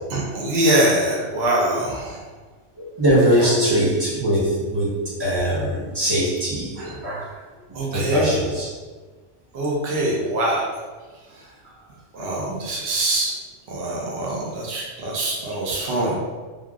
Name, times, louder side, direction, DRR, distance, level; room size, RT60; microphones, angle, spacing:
voice 1, 0.1-2.2 6.8-7.0 7.7-8.3 9.5-10.6 12.1-13.3 13.7-16.2, right 1 dB, 60° right, -4 dB, 0.9 m, -23 dB
voice 2, 2.8-7.4 7.9-8.7 14.7-14.8, equal, 25° right, -7 dB, 0.7 m, -21 dB
3.3 x 2.3 x 2.3 m, 1.4 s
omnidirectional pair, 1.3 m